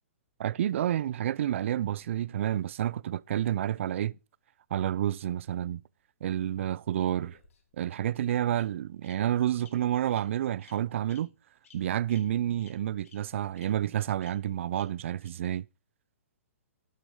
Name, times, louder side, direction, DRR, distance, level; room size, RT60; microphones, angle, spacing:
voice 1, 0.4-4.2 4.7-5.8 6.2-7.4 7.8-11.3 11.7-15.7, right 11 dB, 60° right, 0.4 m, -29 dB
Bird vocalization bird call bird song, 7.1-7.9 8.5-8.6 9.0-9.1 9.6-9.7 10.1-10.2 10.6-10.7 11.1-11.2 11.6-11.8 12.1-12.2 12.6-12.7 13.0-13.1 13.5-13.6 14.2-14.3 14.7-14.8 15.2-15.3, left 7 dB, 70° left, 3.6 m, -56 dB
12.0 x 9.0 x 3.8 m
hypercardioid pair, 135°, 8 cm